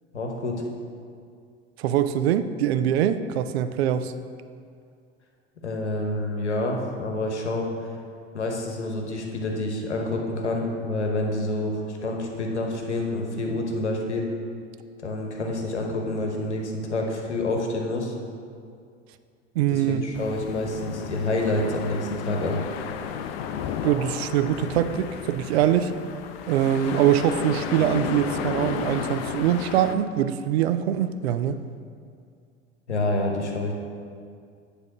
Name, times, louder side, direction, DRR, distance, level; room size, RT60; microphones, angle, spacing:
voice 1, 0.1-0.6 5.6-7.7 8.3-14.3 15.0-18.1 19.7-22.6 32.9-33.7, left 2 dB, 85° left, 1 dB, 1.0 m, -28 dB
voice 2, 1.8-4.1 19.6-20.0 23.8-25.9 26.5-31.6, right 10 dB, 70° right, 11 dB, 0.5 m, -23 dB
sound 1, 20.1-29.9, left 8 dB, 60° left, 0.5 m, -33 dB
9.6 x 3.5 x 5.8 m, 2.3 s
figure-of-eight pair, 75°, 33 cm